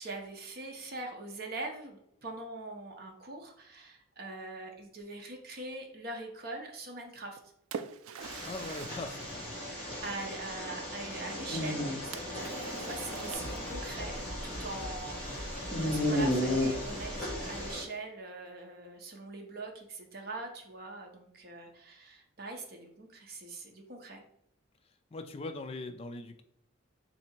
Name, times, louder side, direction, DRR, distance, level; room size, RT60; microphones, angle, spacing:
voice 1, 0.0-7.4 9.6-14.2 14.4-24.2, right 2 dB, 45° right, 2 dB, 0.7 m, -43 dB
Splash splatter, 7.1-10.3 12.1-14.1, right 7 dB, 85° right, 0.4 m, -46 dB
sound 1, 8.2-17.8, left 1 dB, 5° left, 1.6 m, -35 dB
voice 2, 8.4-9.6 9.9-10.0 25.1-26.4, left 2 dB, 30° left, 7 dB, 0.3 m, -41 dB
sound 2, 13.3-17.7, equal, 55° left, 1.4 m, -43 dB
3.4 x 2.8 x 4.3 m, 0.75 s
head